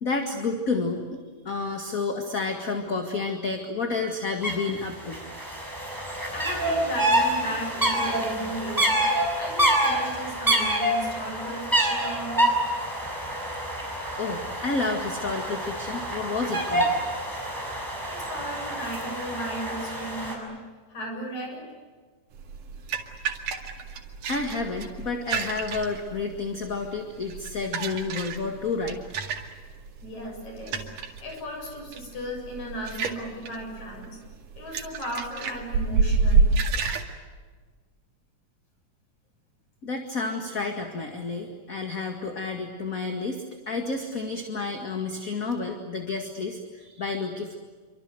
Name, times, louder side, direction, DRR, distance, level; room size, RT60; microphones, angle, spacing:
voice 1, 0.0-5.3 14.2-16.9 24.3-29.0 39.8-47.5, left 3 dB, 30° left, 4 dB, 2.0 m, -30 dB
sound 1, 4.4-4.5 4.8-20.3, right 1 dB, 5° right, 6.4 m, -27 dB
voice 2, 6.3-9.0 9.3-12.5 18.1-20.6 20.9-21.7 30.0-30.9 31.2-34.2 34.6-36.5, equal, 65° left, 2 dB, 8.7 m, -35 dB
sound 2, 22.3-37.0, right 4 dB, 85° right, 3.7 m, -29 dB
27.5 x 25.0 x 7.9 m, 1.5 s
omnidirectional pair, 3.6 m